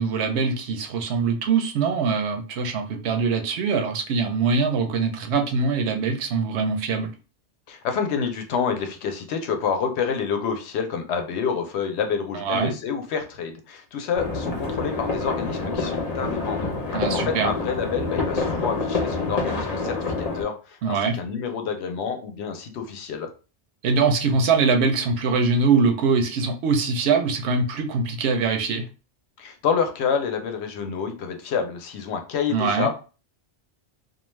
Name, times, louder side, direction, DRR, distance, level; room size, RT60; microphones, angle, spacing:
voice 1, 0.0-7.1 12.3-12.7 16.9-17.5 20.8-21.2 23.8-28.9 32.5-32.9, right 4 dB, 75° right, 5 dB, 0.8 m, -23 dB
voice 2, 7.7-16.7 17.1-23.3 29.4-32.9, left 6 dB, 75° left, 5 dB, 0.8 m, -28 dB
sound 1, 14.1-20.4, left 3 dB, 40° left, 0.7 m, -27 dB
2.4 x 2.2 x 3.1 m, 0.35 s
omnidirectional pair, 1.2 m